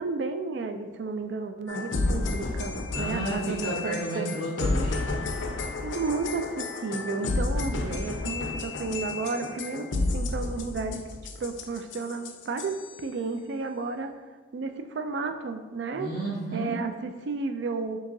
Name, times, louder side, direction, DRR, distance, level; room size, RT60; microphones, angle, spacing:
voice 1, 0.0-4.3 5.8-9.9 10.1-11.0 11.4-12.7 13.0-14.1 14.5-16.1 16.5-18.0, right 4 dB, 70° right, 7 dB, 0.3 m, -32 dB
sound 1, 1.7-13.0, left 3 dB, 80° left, 0.4 m, -31 dB
voice 2, 2.9-5.1 16.0-16.8, right 1 dB, 45° right, -8 dB, 0.8 m, -32 dB
5.0 x 2.9 x 2.7 m, 1.3 s
head